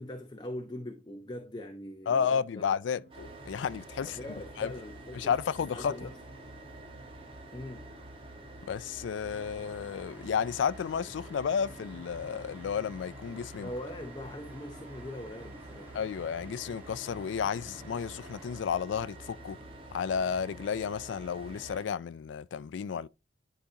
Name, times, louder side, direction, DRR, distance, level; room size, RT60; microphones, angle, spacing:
voice 1, 0.0-2.7 4.0-5.4 5.7-6.2 7.5-7.9 13.6-16.0, left 1 dB, 25° left, 0.7 m, -42 dB
voice 2, 2.1-4.2 4.6-4.7 5.1-5.9 8.7-13.7 15.9-19.6 19.9-23.1, left 7 dB, 85° left, 0.4 m, -32 dB
sound 1, 2.9-7.9, right 3 dB, 70° right, 1.9 m, -61 dB
sound 2, 3.1-21.9, right 1 dB, 30° right, 1.4 m, -48 dB
sound 3, 9.2-18.6, equal, 10° right, 1.6 m, -52 dB
10.5 x 5.0 x 2.8 m
head